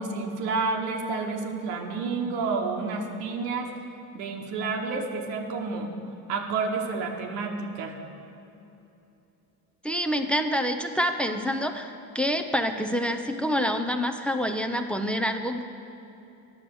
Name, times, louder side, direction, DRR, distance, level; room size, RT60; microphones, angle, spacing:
voice 1, 0.0-3.7 4.1-5.9 6.3-7.9, right 4 dB, 90° right, 1 dB, 1.2 m, -30 dB
voice 2, 9.8-15.6, equal, 5° left, 5 dB, 0.5 m, -27 dB
9.8 x 7.0 x 6.9 m, 2.9 s
supercardioid pair, 100°, 40 cm